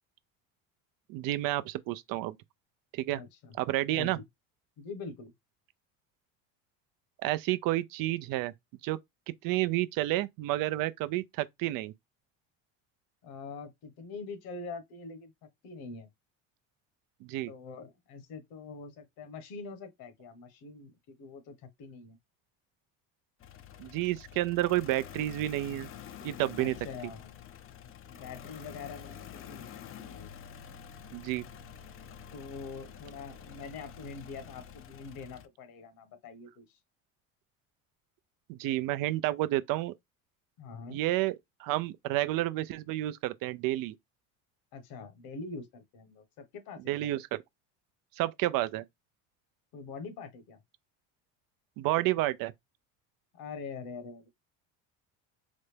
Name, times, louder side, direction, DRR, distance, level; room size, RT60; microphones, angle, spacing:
voice 1, 1.1-2.4 2.9-3.2 3.6-4.2 7.2-8.5 8.8-9.0 9.4-11.9 17.2-17.5 23.8-25.9 26.2-26.8 31.1-31.4 38.5-39.9 40.9-43.9 46.9-47.4 48.2-48.8 51.8-52.5, right 16 dB, 60° right, 0.5 m, -30 dB
voice 2, 3.1-3.5 3.9-4.2 4.8-5.3 13.2-15.3 15.6-16.1 17.5-22.2 26.6-27.3 27.8-30.3 32.3-36.8 40.6-41.0 44.7-47.1 49.7-50.6 53.3-54.3, left 4 dB, 65° left, 1.2 m, -44 dB
sound 1, 23.4-35.5, left 8 dB, 35° left, 0.5 m, -48 dB
4.1 x 2.1 x 3.3 m
supercardioid pair, 95°, 39 cm